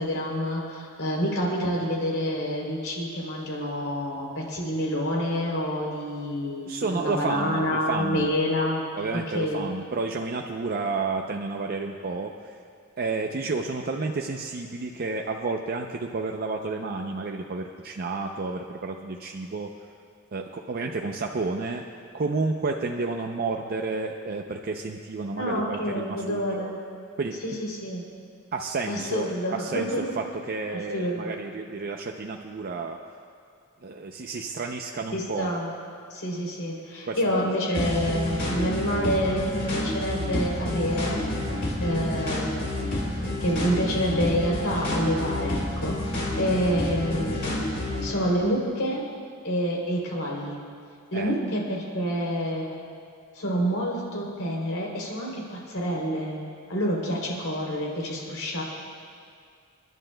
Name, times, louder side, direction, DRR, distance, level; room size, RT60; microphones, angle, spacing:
voice 1, 0.0-8.8 9.1-9.6 25.4-26.8 27.4-28.0 28.9-30.0 30.7-31.4 35.1-35.7 36.1-41.2 41.8-42.9 43.4-47.6 48.0-49.0 49.4-50.6 51.1-52.8 53.3-56.4 56.7-58.6, equal, 80° left, -2 dB, 3.2 m, -28 dB
voice 2, 6.6-8.3 9.0-12.6 13.0-19.7 20.3-21.8 22.1-26.7 27.2-27.4 28.5-33.0 33.8-35.5 37.1-37.4 51.1-51.3, right 3 dB, 45° right, 2 dB, 0.5 m, -31 dB
sound 1, 37.7-48.1, left 1 dB, 60° left, 3.3 m, -29 dB
29.0 x 11.0 x 2.2 m, 2.2 s
head